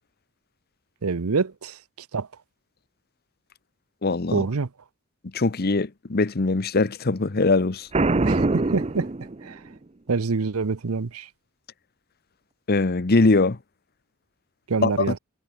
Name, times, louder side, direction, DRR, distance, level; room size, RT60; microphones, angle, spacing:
voice 1, 1.0-2.3 4.3-4.7 8.2-9.6 10.1-11.3 14.7-15.2, right 4 dB, 80° right, 0.7 m, -27 dB
voice 2, 4.0-4.4 5.3-7.9 12.7-13.6 14.8-14.9, left 3 dB, 45° left, 0.9 m, -21 dB
Boom, 7.9-9.8, right 2 dB, 30° right, 0.6 m, -23 dB
head